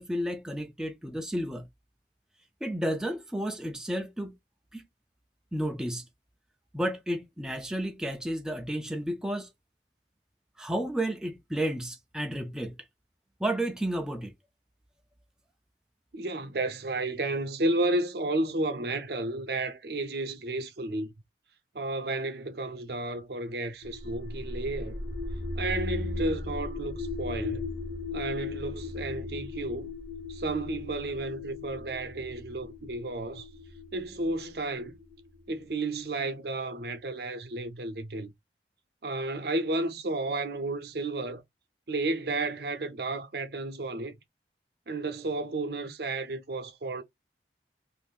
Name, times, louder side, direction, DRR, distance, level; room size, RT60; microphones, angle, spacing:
voice 1, 0.0-1.7 2.6-4.3 4.7-4.8 5.5-6.1 6.7-9.5 10.6-12.8 13.4-14.3, right 1 dB, 5° right, 0.3 m, -32 dB
voice 2, 16.1-21.1 21.7-25.0 25.6-27.6 28.1-29.9 30.3-33.5 33.9-34.9 35.5-38.3 39.0-41.4 41.9-44.2 44.9-47.0, right 2 dB, 60° right, 0.6 m, -32 dB
sound 1, 23.8-35.6, left 3 dB, 65° left, 0.8 m, -37 dB
2.6 x 2.5 x 3.5 m
head